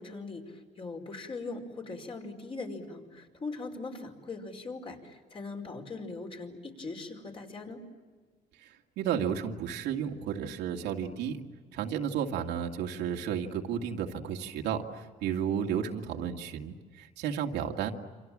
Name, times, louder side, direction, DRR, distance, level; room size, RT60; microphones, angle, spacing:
voice 1, 0.0-7.8, left 3 dB, 30° left, 3 dB, 5.1 m, -40 dB
voice 2, 8.6-11.4 11.7-17.9, right 8 dB, 85° right, 2 dB, 2.4 m, -33 dB
28.5 x 27.0 x 7.6 m, 1.5 s
cardioid pair, 110°, 17 cm